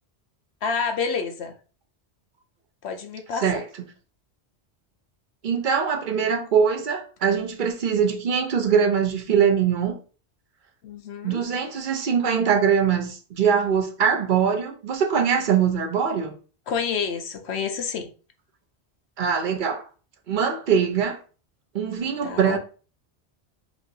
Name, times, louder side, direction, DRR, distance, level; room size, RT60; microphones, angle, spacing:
voice 1, 0.6-1.5 2.8-3.4 10.8-11.4 16.7-18.1 22.2-22.6, left 5 dB, 70° left, 0.9 m, -28 dB
voice 2, 3.3-3.6 5.4-10.0 11.2-16.3 19.2-19.8 20.3-21.2 21.7-22.6, right 7 dB, 50° right, 0.9 m, -22 dB
5.9 x 2.7 x 2.8 m
omnidirectional pair, 1.1 m